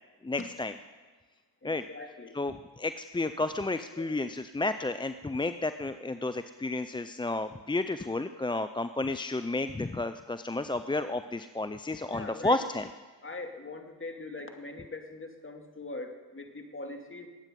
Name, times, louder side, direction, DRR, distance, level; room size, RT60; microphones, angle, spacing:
voice 1, 0.2-0.7 1.6-1.8 2.3-12.9, left 2 dB, 10° left, 10 dB, 0.5 m, -32 dB
voice 2, 1.6-2.3 3.9-4.2 12.1-12.6 13.2-17.3, left 2 dB, 25° left, 4 dB, 2.4 m, -42 dB
21.0 x 9.0 x 5.3 m, 1.4 s
hypercardioid pair, 50°, 48 cm